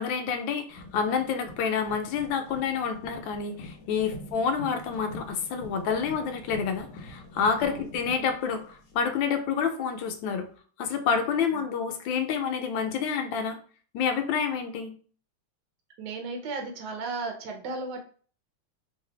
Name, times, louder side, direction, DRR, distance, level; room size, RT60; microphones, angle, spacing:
voice 1, 0.0-10.5 10.8-13.6 13.9-14.9, left 6 dB, 75° left, 6 dB, 1.2 m, -28 dB
sound 1, 0.7-9.5 10.4-10.5, left 1 dB, 60° left, 0.9 m, -46 dB
voice 2, 16.0-18.0, right 3 dB, 70° right, 3 dB, 1.1 m, -35 dB
3.3 x 2.3 x 3.8 m, 0.42 s
omnidirectional pair, 2.3 m